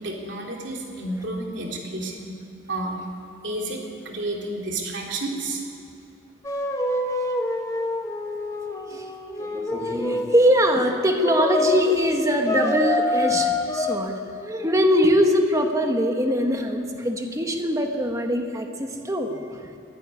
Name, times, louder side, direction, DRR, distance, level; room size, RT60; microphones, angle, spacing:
voice 1, 0.0-2.3 2.7-5.7, right 2 dB, 60° right, 0 dB, 3.5 m, -31 dB
sound 1, 6.4-10.4 11.2-11.9 12.5-14.0, left 2 dB, 15° left, 1.4 m, -26 dB
voice 2, 9.4-19.7, equal, 15° right, 4 dB, 1.6 m, -22 dB
22.0 x 12.0 x 9.9 m, 2.5 s
head